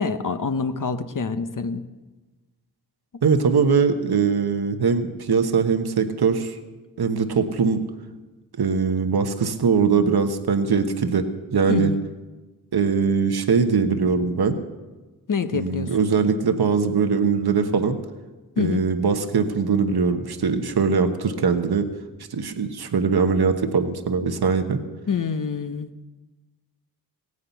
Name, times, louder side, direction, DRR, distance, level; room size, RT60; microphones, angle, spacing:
voice 1, 0.0-1.8 11.7-12.0 15.3-16.0 18.6-18.8 25.1-25.9, left 5 dB, 50° left, 9 dB, 0.9 m, -26 dB
voice 2, 3.2-6.6 7.0-7.8 8.6-11.9 12.7-14.6 15.5-18.0 18.6-21.9 22.3-24.8, right 5 dB, 70° right, 7 dB, 1.1 m, -21 dB
16.5 x 9.6 x 7.0 m, 1.2 s
cardioid pair, 50°, 39 cm